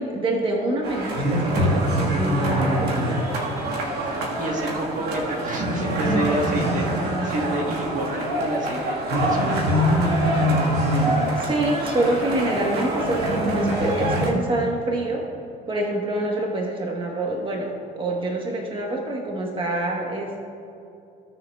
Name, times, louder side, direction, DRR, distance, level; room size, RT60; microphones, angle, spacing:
voice 1, 0.0-3.2 11.4-15.3 15.7-20.4, right 2 dB, 30° right, 0 dB, 1.2 m, -26 dB
sound 1, 0.8-14.3, equal, 75° right, 1.6 m, -24 dB
voice 2, 4.4-6.9 7.2-10.2, right 1 dB, 50° right, 0 dB, 1.3 m, -29 dB
17.0 x 6.7 x 2.3 m, 2.7 s
cardioid pair, 110°, 17 cm